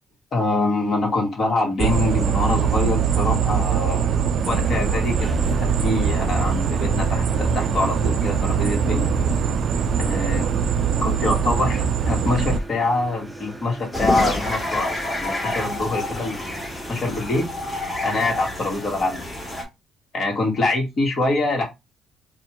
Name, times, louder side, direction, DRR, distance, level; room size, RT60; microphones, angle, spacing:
voice 1, 0.3-4.1 4.5-9.1 10.0-10.7 11.0-16.6 16.9-17.5 18.0-19.3 20.1-21.7, left 2 dB, 45° left, 1.7 m, -25 dB
sound 1, 1.8-12.6, right 6 dB, 55° right, 0.4 m, -22 dB
sound 2, 4.4-17.2, right 2 dB, 5° right, 0.6 m, -40 dB
sound 3, 13.9-19.6, left 2 dB, 15° left, 1.9 m, -28 dB
4.2 x 2.5 x 3.0 m
cardioid pair, 120°, 0 cm